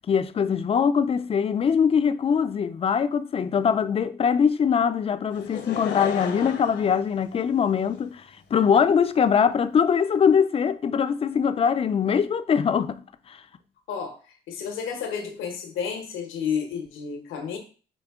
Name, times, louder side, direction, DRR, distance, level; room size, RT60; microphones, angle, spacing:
voice 1, 0.1-8.2 8.5-13.0 13.3-13.4, left 7 dB, 30° left, 0.3 m, -22 dB
Laughter / Crowd, 5.3-8.0 8.7-8.8, left 7 dB, 65° left, 0.8 m, -34 dB
voice 2, 14.5-17.6, left 7 dB, 90° left, 1.0 m, -31 dB
5.0 x 2.6 x 3.6 m
cardioid pair, 90°, 20 cm